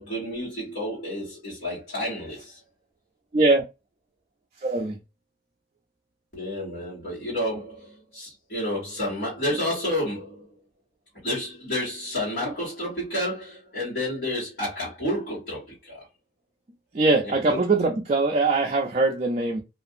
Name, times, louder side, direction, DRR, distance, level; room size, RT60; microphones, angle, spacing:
voice 1, 0.0-2.6 6.3-10.4 11.2-16.0 17.2-17.8, left 1 dB, 65° left, 1.6 m, -30 dB
voice 2, 4.6-5.0 16.9-19.6, right 3 dB, 35° right, 0.4 m, -22 dB
2.6 x 2.5 x 2.5 m
head